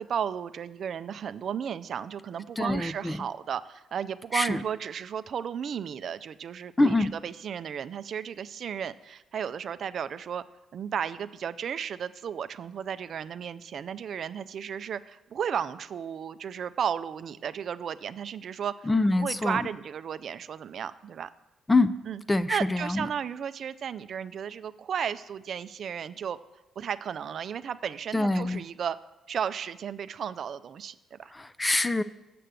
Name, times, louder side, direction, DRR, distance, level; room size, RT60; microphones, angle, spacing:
voice 1, 0.0-10.4 10.7-18.9 19.2-21.3 22.1-22.2 22.5-26.4 26.8-29.0 29.3-31.3, right 8 dB, 60° right, 13 dB, 0.4 m, -34 dB
voice 2, 2.6-3.2 4.3-4.6 6.8-7.1 18.9-19.6 21.7-21.9 22.3-23.1 28.1-28.6 31.3-32.0, left 2 dB, 15° left, 14 dB, 0.4 m, -25 dB
6.8 x 6.6 x 7.6 m, 0.97 s
cardioid pair, 90°, 0 cm